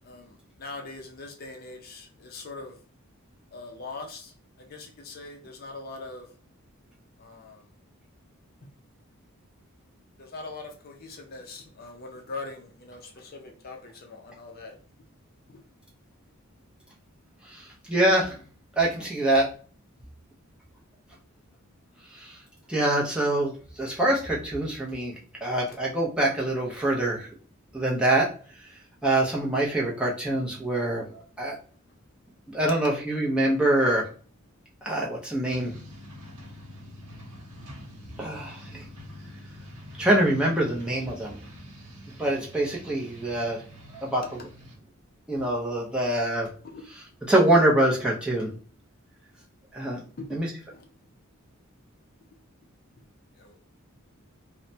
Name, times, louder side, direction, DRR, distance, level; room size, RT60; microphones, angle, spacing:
voice 1, 0.0-2.8 3.5-4.3 4.6-6.3 7.2-7.6 10.2-14.7 15.5-15.6 25.7-25.8 32.6-32.9 46.6-46.8 50.2-50.4 50.7-50.9 53.4-53.6, left 3 dB, 45° left, 2 dB, 0.5 m, -42 dB
voice 2, 17.4-18.4 18.8-19.5 22.1-22.4 22.7-25.1 25.4-27.3 27.7-28.3 29.0-31.1 31.4-31.6 32.5-34.1 34.8-35.7 38.2-38.9 40.0-41.4 42.2-43.6 43.9-44.5 45.3-46.5 47.3-48.5 49.7-50.0 50.3-50.5, right 1 dB, 5° right, -4 dB, 0.5 m, -25 dB
sound 1, 35.5-44.8, equal, 85° right, 0.8 m, -45 dB
3.1 x 2.1 x 2.6 m, 0.42 s
head